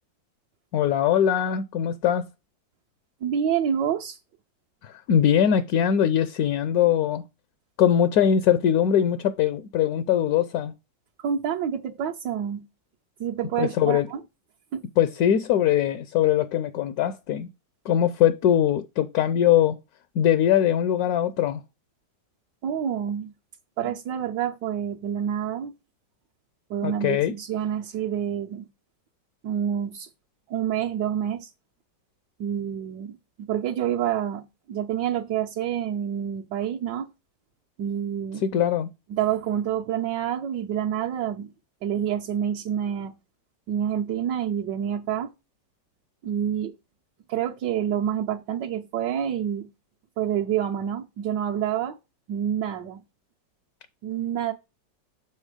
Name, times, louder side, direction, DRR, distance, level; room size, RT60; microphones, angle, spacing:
voice 1, 0.7-2.3 4.8-7.2 7.8-10.7 13.6-14.1 15.0-17.5 17.8-19.8 20.1-21.6 26.8-27.3 38.4-38.9, left 10 dB, 70° left, 1.0 m, -21 dB
voice 2, 3.2-4.2 11.2-12.6 13.2-14.2 14.7-14.8 22.6-23.3 23.8-25.7 26.7-28.7 29.4-30.1 30.5-31.5 32.4-34.4 34.7-37.1 37.8-38.4 39.1-41.5 41.8-43.1 43.7-45.3 46.2-46.7 47.3-49.7 50.2-52.0 52.3-53.0 54.0-54.5, right 9 dB, 70° right, 1.4 m, -27 dB
7.2 x 4.0 x 4.9 m
omnidirectional pair, 2.0 m